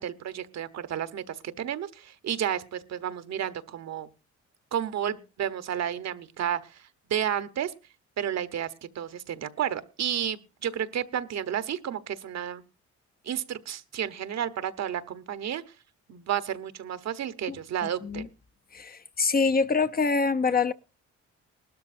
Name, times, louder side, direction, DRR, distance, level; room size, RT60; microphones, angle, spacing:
voice 1, 0.0-4.1 4.7-7.7 8.2-8.7 8.9-12.6 13.2-15.6 16.1-18.2, right 9 dB, 60° right, 1.1 m, -31 dB
voice 2, 18.7-20.7, left 4 dB, 30° left, 0.7 m, -25 dB
19.5 x 12.5 x 2.6 m
cardioid pair, 90°, 30 cm